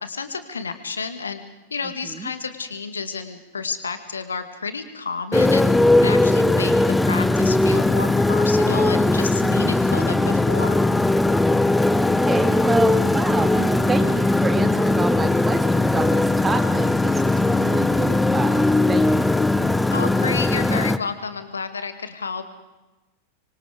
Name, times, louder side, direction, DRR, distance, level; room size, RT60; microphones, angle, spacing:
voice 1, 0.0-1.4 1.7-5.7 6.0-6.7 7.1-10.8 19.9-22.4, left 5 dB, 75° left, 9 dB, 2.2 m, -30 dB
Motorcycle, 5.3-21.0, left 2 dB, 5° left, 1.0 m, -19 dB
voice 2, 11.9-19.5, right 4 dB, 15° right, 9 dB, 2.3 m, -29 dB
25.5 x 24.0 x 5.1 m, 1.1 s
figure-of-eight pair, 90°, 0 cm